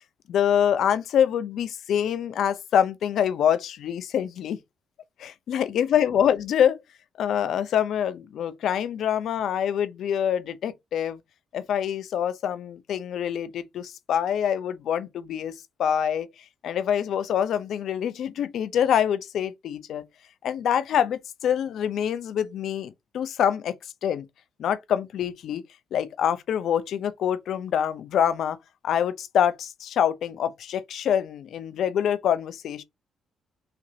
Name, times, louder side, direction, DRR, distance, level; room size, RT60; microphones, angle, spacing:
voice 1, 0.3-4.6 5.2-6.8 7.2-11.2 11.5-16.3 16.6-20.0 20.4-24.3 24.6-25.6 25.9-28.6 28.8-32.8, left 9 dB, 70° left, 0.6 m, -25 dB
5.9 x 2.5 x 2.8 m
cardioid pair, 90°, 0 cm